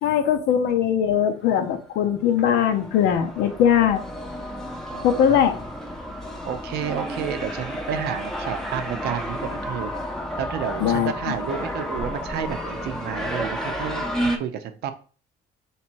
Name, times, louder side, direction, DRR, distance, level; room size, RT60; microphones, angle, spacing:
voice 1, 0.0-4.0 5.0-5.6 10.8-11.1, left 9 dB, 85° left, 7 dB, 0.7 m, -20 dB
sound 1, 1.6-1.7 2.3-14.4, equal, 5° left, 0.6 m, -31 dB
voice 2, 4.9-5.4 6.4-14.9, right 9 dB, 70° right, 10 dB, 0.6 m, -31 dB
3.2 x 3.0 x 4.4 m, 0.39 s
cardioid pair, 110°, 17 cm